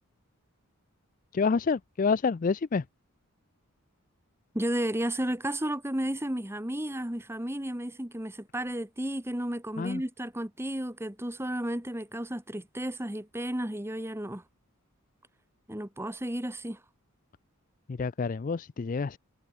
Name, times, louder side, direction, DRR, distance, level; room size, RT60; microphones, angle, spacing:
voice 1, 1.3-2.8 9.8-10.0 18.0-19.2, left 5 dB, 40° left, 0.4 m, -28 dB
voice 2, 4.5-14.4 15.7-16.8, right 1 dB, 10° right, 1.5 m, -33 dB
head